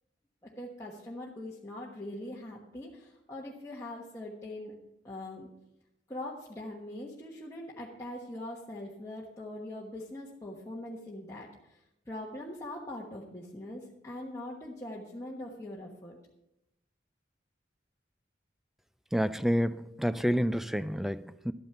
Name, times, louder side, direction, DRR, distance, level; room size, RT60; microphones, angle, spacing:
voice 1, 0.4-4.7 5.0-5.5 6.1-11.8 12.0-16.2, left 1 dB, 15° left, 1.3 m, -42 dB
voice 2, 19.1-21.5, equal, ahead, 0.4 m, -29 dB
12.0 x 9.3 x 5.7 m
head